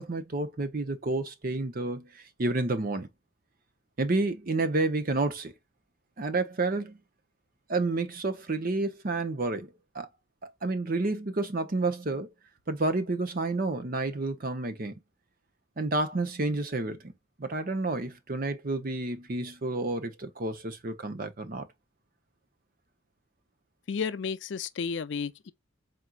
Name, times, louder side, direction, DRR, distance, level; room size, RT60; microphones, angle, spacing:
voice 1, 0.0-3.1 4.0-5.5 6.2-7.0 7.7-9.7 9.9-10.1 10.4-12.3 12.7-15.0 15.8-17.1 17.4-21.7, right 2 dB, 45° right, 0.7 m, -30 dB
voice 2, 23.9-25.5, left 6 dB, 60° left, 0.4 m, -32 dB
4.3 x 3.8 x 2.3 m
head